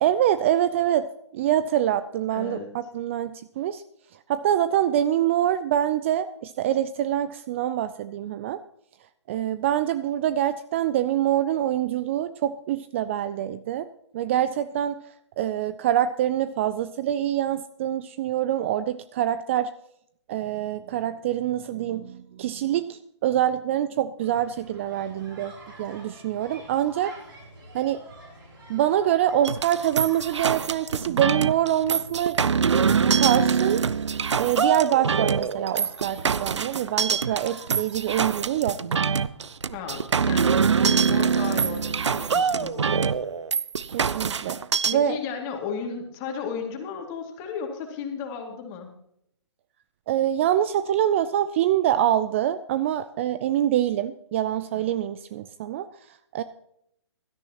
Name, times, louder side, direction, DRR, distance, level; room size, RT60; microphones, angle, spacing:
voice 1, 0.0-1.1 1.3-3.8 4.3-8.6 9.3-13.9 14.1-15.0 15.4-19.7 20.3-25.5 25.8-27.1 27.7-28.0 28.7-32.4 33.2-33.8 34.3-39.1 43.9-44.6 44.9-45.2 50.1-56.4, right 11 dB, 25° right, 13 dB, 0.4 m, -25 dB
voice 2, 2.3-2.7 39.7-43.1 44.9-48.9 54.7-54.9, left 6 dB, 25° left, 3 dB, 2.3 m, -34 dB
sound 1, 24.2-42.1, right 2 dB, 50° right, 6.3 m, -49 dB
sound 2, 29.4-44.9, right 6 dB, 75° right, 0.6 m, -24 dB
16.5 x 13.0 x 2.9 m, 0.74 s
figure-of-eight pair, 135°, 15 cm